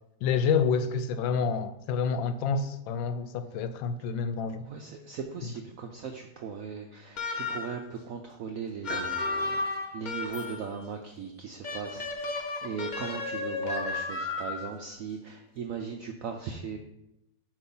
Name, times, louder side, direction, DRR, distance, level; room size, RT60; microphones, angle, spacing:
voice 1, 0.2-4.6, left 5 dB, 90° left, 1.3 m, -28 dB
voice 2, 4.6-16.8, right 6 dB, 80° right, 0.7 m, -38 dB
sound 1, 7.2-7.9 8.8-10.7 11.6-14.8, left 3 dB, 60° left, 0.4 m, -33 dB
sound 2, 8.9-10.7, right 1 dB, 10° left, 0.7 m, -43 dB
sound 3, 10.3-11.9, right 1 dB, 35° right, 0.6 m, -55 dB
8.0 x 3.0 x 5.4 m
omnidirectional pair, 2.0 m